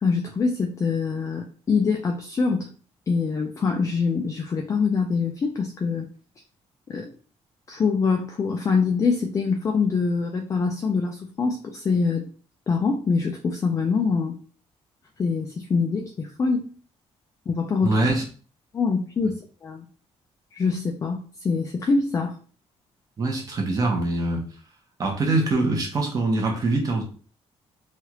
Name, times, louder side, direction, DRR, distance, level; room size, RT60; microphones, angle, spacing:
voice 1, 0.0-2.7 3.1-6.1 6.9-7.1 7.7-12.2 12.7-14.4 15.2-16.7 17.5-18.0 18.7-19.9 20.5-22.4, left 4 dB, 25° left, 3 dB, 0.3 m, -24 dB
voice 2, 17.8-18.2 23.2-24.5 25.0-27.0, right 2 dB, 30° right, 0 dB, 0.8 m, -23 dB
3.1 x 2.4 x 2.9 m, 0.40 s
cardioid pair, 165°, 12 cm